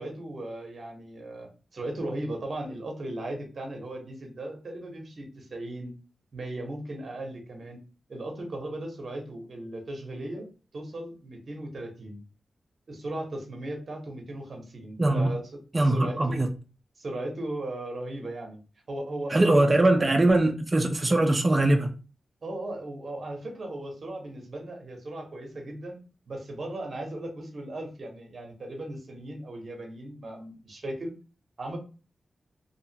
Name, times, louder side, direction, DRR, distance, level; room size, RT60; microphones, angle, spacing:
voice 1, 0.0-5.9 6.3-7.8 8.1-10.5 10.7-12.2 12.9-16.4 17.0-18.6 18.9-19.9 22.4-26.0 26.3-31.1 31.6-31.8, right 1 dB, 50° right, 0.8 m, -37 dB
voice 2, 15.7-16.5 19.3-21.9, right 2 dB, 25° right, 0.4 m, -21 dB
2.7 x 2.4 x 2.7 m
wide cardioid pair, 140°, 0 cm